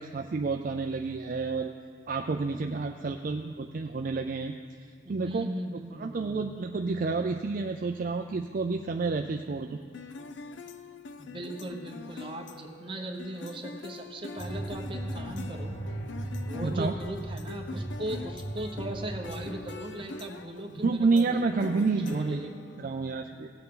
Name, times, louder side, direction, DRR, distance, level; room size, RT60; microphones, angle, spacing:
voice 1, 0.0-1.7 2.1-4.5 5.1-5.5 6.0-9.8 16.6-17.0 20.7-22.4 22.8-23.5, right 4 dB, 50° right, 5 dB, 0.4 m, -29 dB
voice 2, 5.0-6.4 11.2-15.8 16.5-22.5, right 1 dB, 30° right, 2 dB, 1.0 m, -38 dB
sound 1, 9.9-23.1, left 4 dB, 85° left, 0.5 m, -44 dB
sound 2, 14.4-19.5, right 1 dB, 55° left, 2.4 m, -37 dB
17.5 x 8.1 x 3.8 m, 2.2 s
head